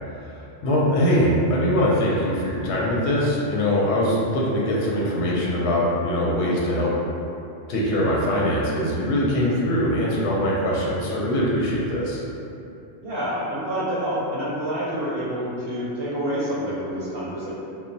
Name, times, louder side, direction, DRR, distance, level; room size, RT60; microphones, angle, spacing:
voice 1, 0.1-6.9 7.7-12.2, equal, 80° left, -5 dB, 0.8 m, -22 dB
voice 2, 13.0-17.5, equal, 65° right, -7 dB, 0.8 m, -27 dB
2.1 x 2.0 x 3.8 m, 2.7 s
omnidirectional pair, 1.1 m